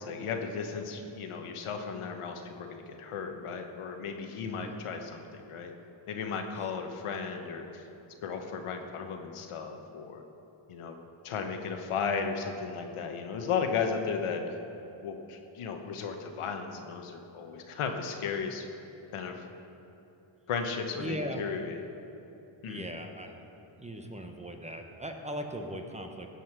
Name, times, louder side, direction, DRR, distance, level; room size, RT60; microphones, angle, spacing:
voice 1, 0.0-5.7 6.1-7.9 8.2-10.2 10.7-11.0 11.2-14.4 15.0-18.7 19.1-19.4 20.5-21.8 22.6-22.9, left 5 dB, 85° left, 4 dB, 1.2 m, -35 dB
voice 2, 4.4-4.7 21.0-21.4 22.7-23.4 23.8-26.3, right 1 dB, 15° right, 4 dB, 1.0 m, -38 dB
16.5 x 5.6 x 6.0 m, 3.0 s
cardioid pair, 95°, 50 cm